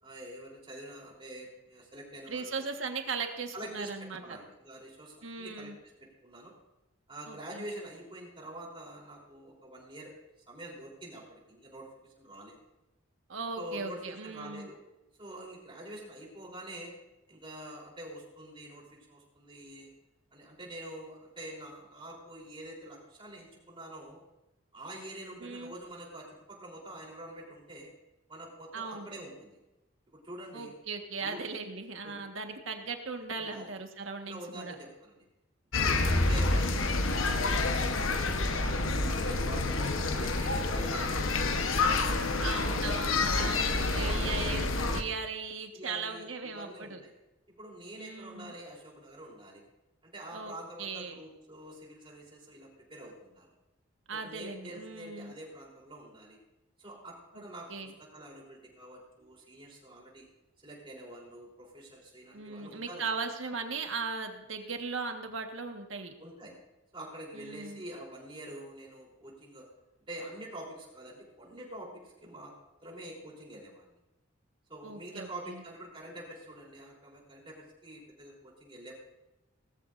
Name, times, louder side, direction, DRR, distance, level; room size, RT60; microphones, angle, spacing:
voice 1, 0.0-2.7 3.5-5.7 6.0-6.5 7.1-10.1 10.5-12.6 13.6-14.8 15.2-16.9 17.3-19.9 20.3-24.2 24.7-27.9 28.3-29.6 30.1-30.7 31.2-31.4 32.0-32.2 33.4-33.7 34.2-35.2 35.8-38.0 38.4-41.4 41.8-43.2 44.2-44.5 45.7-47.1 47.5-49.6 50.0-53.5 54.1-56.4 56.8-60.3 60.6-63.2 66.2-66.5 66.9-69.7 70.1-72.5 72.8-74.0 74.7-78.9, right 1 dB, 25° right, -3 dB, 3.6 m, -46 dB
voice 2, 2.3-4.2 5.2-5.8 7.3-7.6 13.3-14.7 25.4-25.7 28.7-29.1 30.5-34.8 35.9-36.4 38.9-39.4 39.8-39.9 42.4-47.0 48.0-48.5 50.3-50.5 50.8-51.2 54.1-55.3 57.3-57.4 57.7-57.9 62.3-66.1 67.3-67.8 74.8-75.6, right 4 dB, 75° right, 4 dB, 1.5 m, -38 dB
sound 1, 35.7-45.0, left 3 dB, 85° left, 1.1 m, -28 dB
18.5 x 14.0 x 2.6 m, 0.99 s
head